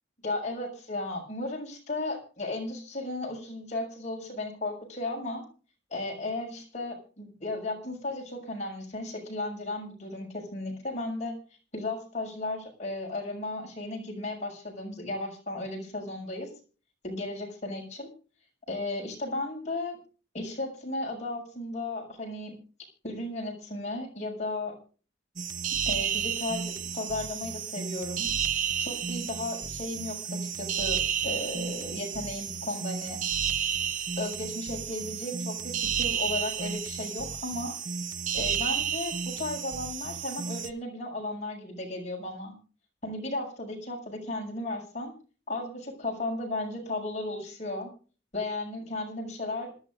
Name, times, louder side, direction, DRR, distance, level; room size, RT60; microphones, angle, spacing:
voice 1, 0.2-5.4 5.9-11.3 11.7-16.5 17.0-18.1 18.7-20.0 20.3-22.6 23.0-24.8 25.9-28.3 28.8-33.2 34.2-37.7 38.3-42.5 43.0-45.1 45.5-47.9 48.3-49.7, left 2 dB, 40° left, -1 dB, 6.5 m, -35 dB
sound 1, 25.4-40.7, right 7 dB, 45° right, 0.8 m, -32 dB
26.5 x 12.0 x 2.6 m, 0.38 s
head